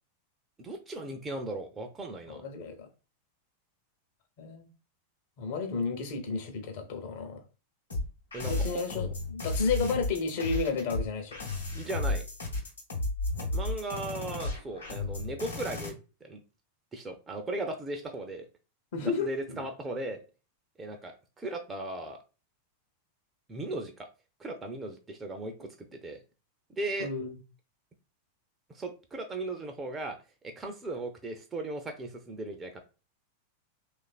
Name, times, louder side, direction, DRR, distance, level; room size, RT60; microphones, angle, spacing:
voice 1, 0.6-2.4 8.3-8.7 11.7-12.2 13.5-16.4 16.9-18.5 19.0-20.2 20.8-22.2 23.5-24.1 24.4-26.2 26.7-27.1 28.7-30.2 30.4-32.8, right 2 dB, 15° right, 0.4 m, -37 dB
voice 2, 2.3-2.9 4.4-4.7 5.4-7.4 8.4-11.4 18.9-19.6 27.0-27.4, left 4 dB, 50° left, 0.7 m, -32 dB
sound 1, 7.9-15.9, left 2 dB, 75° left, 0.9 m, -33 dB
3.1 x 2.4 x 2.3 m
figure-of-eight pair, 90°, 0 cm